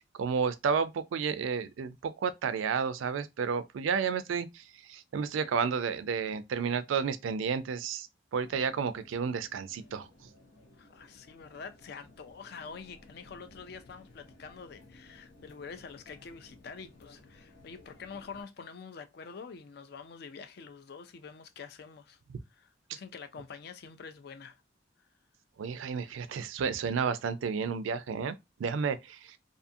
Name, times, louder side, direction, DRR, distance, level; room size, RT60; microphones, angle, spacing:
voice 1, 0.0-10.3 22.9-23.0 25.6-29.4, right 6 dB, 85° right, 0.3 m, -32 dB
sound 1, 8.4-18.4, left 2 dB, 75° left, 0.8 m, -57 dB
voice 2, 10.8-22.2 22.5-24.6, left 5 dB, 55° left, 0.4 m, -46 dB
2.6 x 2.4 x 2.6 m
head